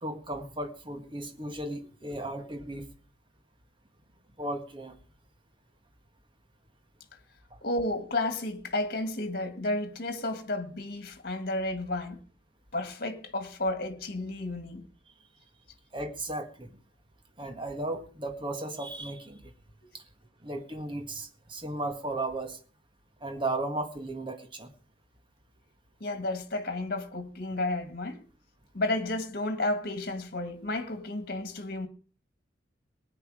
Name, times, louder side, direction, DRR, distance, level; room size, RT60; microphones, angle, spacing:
voice 1, 0.0-2.9 4.4-4.9 7.5-7.6 15.9-16.8 17.4-19.5 19.9-20.0 20.4-22.6 23.2-24.7, right 2 dB, 25° right, 1.7 m, -35 dB
voice 2, 7.6-12.2 12.7-14.9 19.8-19.9 26.0-28.2 28.7-31.9, left 2 dB, 50° left, 2.0 m, -32 dB
19.0 x 9.7 x 4.9 m
head